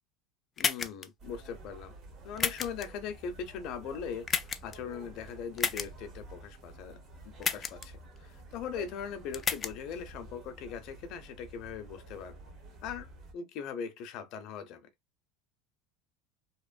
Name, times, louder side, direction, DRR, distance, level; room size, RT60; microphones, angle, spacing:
voice 1, 0.6-1.9 2.2-4.3 4.6-7.0 7.3-12.4 12.8-13.1 13.3-14.9, left 7 dB, 55° left, 0.6 m, -40 dB
sound 1, 0.6-1.1 2.4-2.9 4.3-4.8 5.6-5.9 7.4-7.9 9.3-9.7, left 6 dB, 25° left, 0.3 m, -31 dB
sound 2, 1.2-13.3, right 2 dB, 40° right, 0.9 m, -50 dB
2.9 x 2.0 x 2.4 m
supercardioid pair, 125°, 0 cm